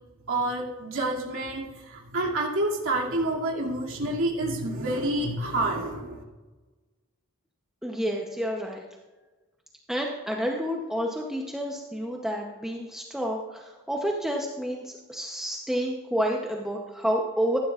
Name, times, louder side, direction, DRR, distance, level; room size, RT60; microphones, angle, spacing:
voice 1, 0.3-6.2, right 1 dB, 70° right, -3 dB, 2.4 m, -28 dB
voice 2, 7.8-8.8 9.9-17.6, equal, ahead, 0 dB, 0.7 m, -29 dB
14.5 x 11.5 x 2.4 m, 1.2 s
head